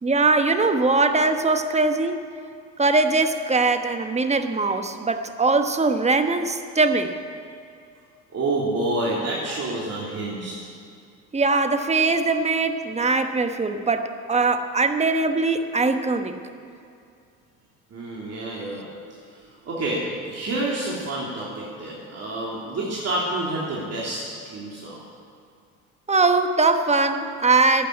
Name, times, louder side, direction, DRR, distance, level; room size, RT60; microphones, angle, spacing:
voice 1, 0.0-2.2 2.8-7.2 11.3-16.3 26.1-27.9, right 3 dB, 15° right, 8 dB, 1.1 m, -21 dB
voice 2, 8.3-10.7 17.9-19.2 19.6-25.0, right 2 dB, 40° right, -5 dB, 3.1 m, -28 dB
12.0 x 9.2 x 9.8 m, 2.4 s
hypercardioid pair, 80°, 39 cm